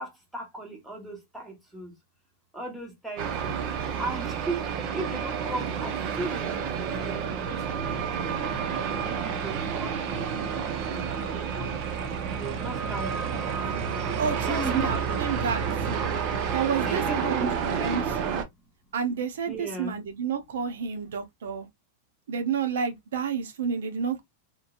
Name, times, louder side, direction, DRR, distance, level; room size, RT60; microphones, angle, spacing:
voice 1, 0.0-1.9 2.5-3.6 4.0-4.6 4.9-6.7 6.9-8.6 9.0-12.1 12.4-13.2 14.4-15.2 16.8-17.6 19.5-20.0, right 2 dB, 5° right, 1.1 m, -37 dB
sound 1, 3.2-18.4, right 7 dB, 40° right, 0.6 m, -30 dB
voice 2, 14.2-16.0 16.5-18.4 18.9-21.7 22.3-24.2, right 6 dB, 90° right, 0.7 m, -30 dB
3.0 x 2.6 x 2.3 m
supercardioid pair, 155°, 0 cm